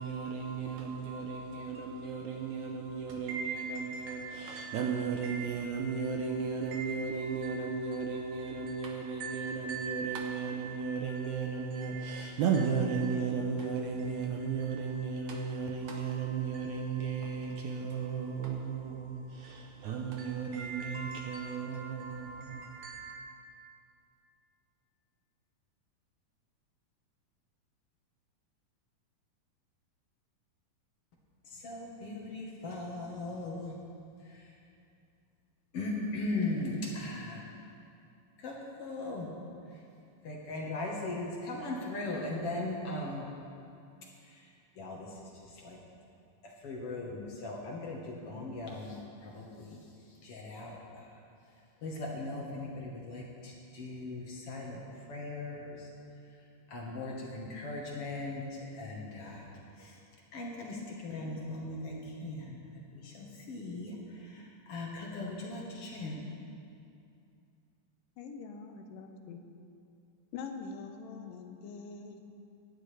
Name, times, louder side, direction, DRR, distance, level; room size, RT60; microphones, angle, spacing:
voice 1, 0.0-23.2, right 5 dB, 75° right, 2 dB, 1.8 m, -34 dB
voice 2, 31.5-33.7 34.2-34.5 35.7-37.4 38.4-39.3 40.2-43.3 44.2-44.5 44.8-45.8 46.4-49.8 50.2-51.2 51.8-54.8 55.1-55.9 56.7-59.5 59.8-60.0 60.3-62.6 62.9-66.2, left 2 dB, 55° left, -2 dB, 1.8 m, -39 dB
voice 3, 68.2-69.4 70.3-72.2, left 5 dB, 85° left, 5 dB, 2.5 m, -44 dB
17.0 x 11.0 x 3.3 m, 2.6 s
omnidirectional pair, 3.9 m